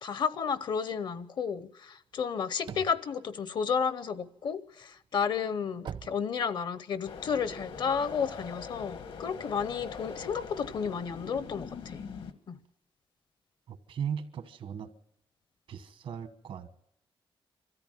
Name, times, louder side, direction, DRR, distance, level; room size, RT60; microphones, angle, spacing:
voice 1, 0.0-12.0 12.5-12.6, left 6 dB, 55° left, 14 dB, 0.7 m, -32 dB
sound 1, 2.1-4.3 4.8-7.0, right 7 dB, 60° right, 0.8 m, -44 dB
sound 2, 7.0-12.3, left 5 dB, 75° left, 1.4 m, -42 dB
voice 2, 13.7-14.9 15.7-16.7, right 8 dB, 80° right, 10 dB, 1.3 m, -37 dB
23.0 x 14.0 x 9.1 m, 0.84 s
wide cardioid pair, 170°, 9 cm